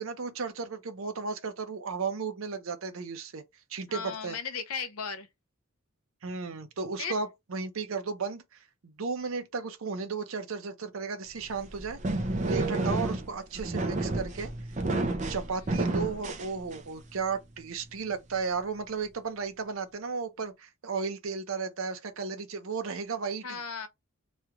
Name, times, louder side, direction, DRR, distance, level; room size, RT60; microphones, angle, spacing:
voice 1, 0.0-3.4 3.7-4.4 6.2-8.4 8.8-12.0 12.5-14.5 15.3-23.6, right 5 dB, 70° right, 0.7 m, -34 dB
voice 2, 3.9-5.3 7.0-7.2 23.4-23.9, left 5 dB, 85° left, 0.7 m, -36 dB
sound 1, 11.4-17.1, right 2 dB, 35° right, 0.5 m, -30 dB
3.1 x 2.4 x 2.9 m
head